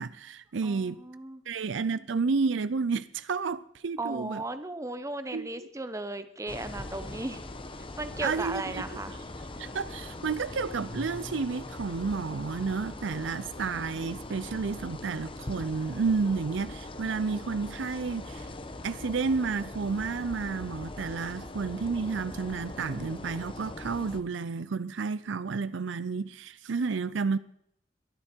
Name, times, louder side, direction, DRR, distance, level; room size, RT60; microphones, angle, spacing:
voice 1, 0.0-1.0 1.5-4.4 5.3-5.7 8.2-8.8 9.6-18.5 18.8-27.4, right 4 dB, 70° right, 0.5 m, -31 dB
voice 2, 0.6-1.4 4.0-7.4 8.0-9.2, right 2 dB, 15° right, 1.0 m, -36 dB
sound 1, 6.5-24.2, left 2 dB, 25° left, 1.0 m, -41 dB
22.5 x 11.0 x 4.5 m
head